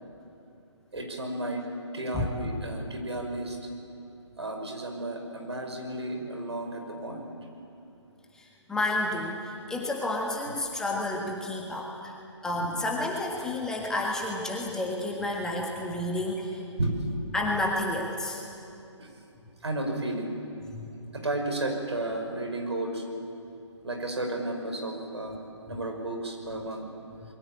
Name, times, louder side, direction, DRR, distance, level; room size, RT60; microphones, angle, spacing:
voice 1, 0.9-1.6 1.9-3.6 4.4-7.3 12.5-12.8 16.8-16.9 19.0-19.1 19.6-20.3 21.1-23.0 23.8-25.4 25.7-26.8, right 2 dB, 60° right, 2 dB, 6.0 m, -33 dB
voice 2, 8.3-12.2 12.4-16.6 17.3-18.4 20.7-20.8, left 2 dB, 5° left, -2 dB, 1.7 m, -30 dB
27.5 x 22.0 x 8.6 m, 2.7 s
figure-of-eight pair, 140°, 16 cm